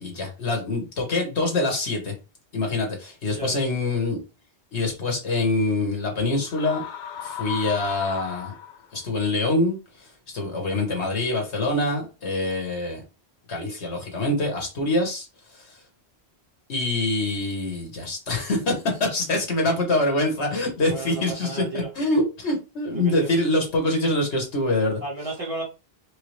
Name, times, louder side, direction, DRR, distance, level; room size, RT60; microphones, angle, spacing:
voice 1, 0.0-2.1 2.5-4.2 4.7-6.8 7.2-8.5 8.9-13.0 13.5-15.3 15.6-15.7 16.7-21.6 22.0-25.0, left 2 dB, 80° left, 1.6 m, -25 dB
voice 2, 3.3-3.7 20.8-21.9 22.9-23.3 25.0-25.6, right 3 dB, 30° right, 1.3 m, -33 dB
sound 1, 6.4-9.1, left 11 dB, 55° left, 0.5 m, -35 dB
4.8 x 2.3 x 3.1 m
omnidirectional pair, 1.1 m